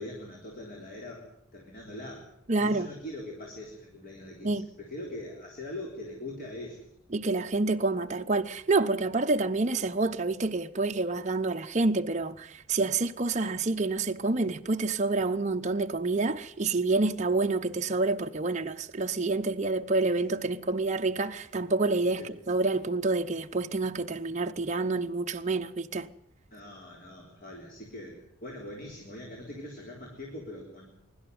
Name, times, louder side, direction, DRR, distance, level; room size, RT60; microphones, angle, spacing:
voice 1, 0.0-6.9 22.2-22.3 26.5-31.0, left 1 dB, 40° left, 3.9 m, -42 dB
voice 2, 2.5-2.9 4.4-4.7 7.1-26.1, right 3 dB, 35° right, 0.7 m, -28 dB
24.0 x 12.0 x 9.3 m
head